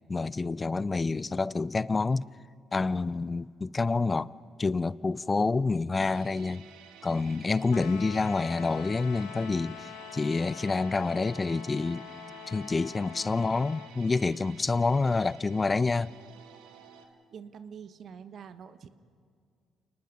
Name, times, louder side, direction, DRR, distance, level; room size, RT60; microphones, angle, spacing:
voice 1, 0.1-2.3 2.7-4.3 4.6-6.7 7.0-12.1 12.5-16.1, left 3 dB, 30° left, 0.5 m, -28 dB
sound 1, 6.0-17.1, right 7 dB, 80° right, 1.7 m, -51 dB
sound 2, 7.7-13.9, left 13 dB, 80° left, 0.8 m, -45 dB
voice 2, 17.3-18.9, right 7 dB, 60° right, 1.2 m, -46 dB
29.0 x 19.5 x 5.3 m
hypercardioid pair, 55°, 0 cm